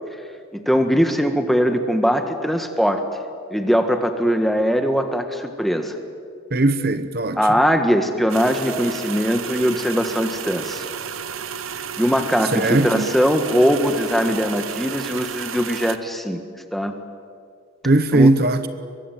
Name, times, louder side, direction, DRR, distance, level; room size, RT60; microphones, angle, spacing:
voice 1, 0.5-3.0 3.5-6.0 7.3-10.9 12.0-16.4 16.7-16.9 18.1-18.3, equal, ahead, 1.6 m, -20 dB
voice 2, 6.5-7.4 12.5-13.1 17.8-18.7, right 2 dB, 50° right, 1.0 m, -18 dB
sound 1, 8.3-16.0, right 7 dB, 90° right, 1.1 m, -32 dB
24.0 x 22.5 x 9.3 m
head